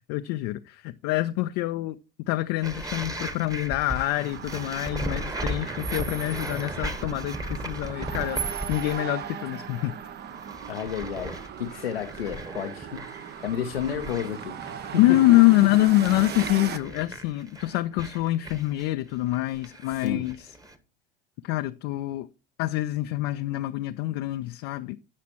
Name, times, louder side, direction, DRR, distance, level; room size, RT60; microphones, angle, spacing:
voice 1, 0.1-2.0 2.3-10.0 15.0-20.5 21.4-22.3 22.6-25.0, left 17 dB, 50° left, 0.6 m, -25 dB
sound 1, 2.6-9.2 9.5-9.9 10.3-20.8, right 1 dB, 10° right, 1.3 m, -37 dB
sound 2, 3.9-16.8, right 8 dB, 35° right, 0.8 m, -38 dB
voice 2, 10.7-15.4 20.0-20.3, left 8 dB, 85° left, 0.8 m, -32 dB
17.0 x 5.9 x 3.0 m
hypercardioid pair, 75°, 29 cm